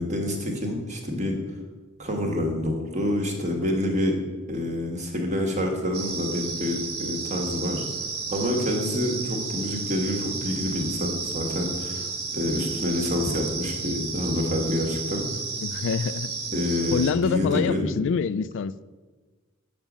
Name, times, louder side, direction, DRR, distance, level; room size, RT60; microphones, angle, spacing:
voice 1, 0.0-1.4 2.0-4.2 4.5-7.8 8.3-15.3 16.5-17.9, left 1 dB, 35° right, 2 dB, 1.3 m, -27 dB
sound 1, 5.9-17.1, right 4 dB, 85° right, 1.2 m, -33 dB
voice 2, 15.6-16.3 16.9-18.8, left 6 dB, 55° left, 17 dB, 0.3 m, -26 dB
7.3 x 5.1 x 7.2 m, 1.3 s
head